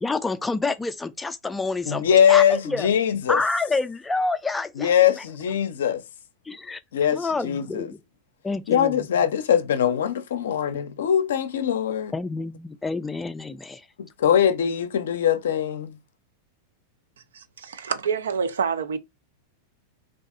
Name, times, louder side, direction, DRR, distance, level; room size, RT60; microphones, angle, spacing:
voice 1, 0.0-2.9 3.3-5.2 6.5-6.8 7.1-8.0 8.4-9.1 12.1-13.8, left 3 dB, 10° left, 0.3 m, -28 dB
voice 2, 1.9-3.4 4.8-6.0 6.9-7.9 8.7-12.1 14.2-16.0, left 9 dB, 75° left, 0.4 m, -22 dB
voice 3, 17.3-19.0, right 6 dB, 80° right, 0.4 m, -27 dB
2.6 x 2.3 x 2.4 m
hypercardioid pair, 95°, 0 cm